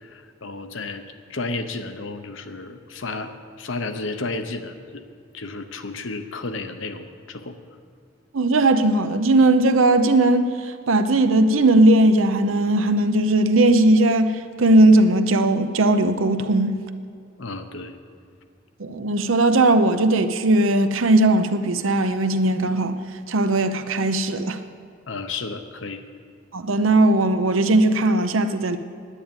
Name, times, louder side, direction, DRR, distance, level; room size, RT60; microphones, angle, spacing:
voice 1, 0.0-1.0 1.3-5.0 5.3-7.6 17.4-18.0 25.1-26.0, left 3 dB, 70° left, 0.9 m, -32 dB
voice 2, 8.3-16.7 18.8-22.9 23.3-24.6 26.5-28.8, right 2 dB, 80° right, 0.7 m, -18 dB
10.0 x 9.4 x 8.9 m
head